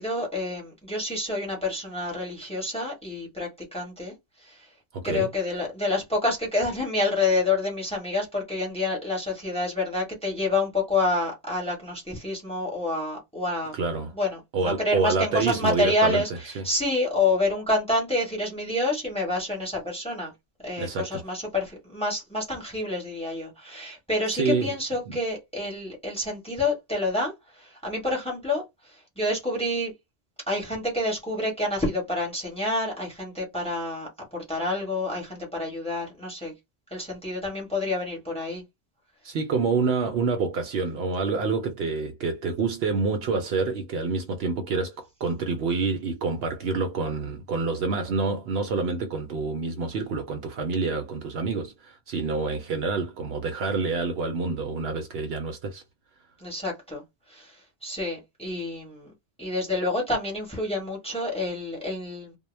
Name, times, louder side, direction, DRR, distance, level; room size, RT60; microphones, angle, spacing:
voice 1, 0.0-4.1 4.4-4.7 5.0-13.7 14.1-20.3 20.6-28.6 29.2-29.9 30.5-36.5 36.9-38.6 56.4-57.0 57.3-57.5 57.8-59.1 59.4-62.3, left 2 dB, 5° left, 1.0 m, -28 dB
voice 2, 4.9-5.3 13.7-14.1 14.5-16.2 16.6-16.7 20.8-21.2 24.3-24.7 25.1-25.2 39.2-55.8, right 4 dB, 70° right, 0.7 m, -27 dB
2.2 x 2.1 x 3.1 m
omnidirectional pair, 1.1 m